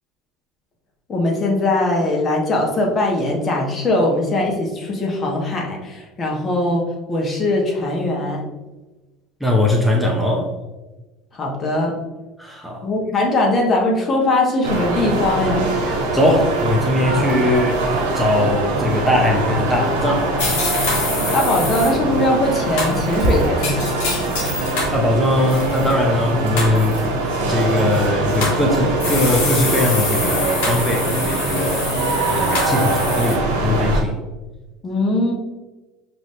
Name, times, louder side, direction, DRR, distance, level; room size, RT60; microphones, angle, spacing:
voice 1, 1.1-8.4 11.3-12.0 12.8-15.7 21.3-23.9 34.8-35.3, left 2 dB, 35° left, 0 dB, 1.2 m, -20 dB
voice 2, 9.4-10.5 12.4-12.9 15.8-20.9 24.5-34.2, left 1 dB, ahead, -1 dB, 0.9 m, -21 dB
sound 1, 14.6-34.0, right 2 dB, 75° right, 0.9 m, -22 dB
sound 2, 20.4-21.9 22.8-25.0 25.4-25.9 26.6-27.0 27.9-28.6 29.0-33.3, left 3 dB, 70° left, 1.4 m, -25 dB
5.0 x 3.0 x 3.2 m, 1.1 s
hypercardioid pair, 75°, 0 cm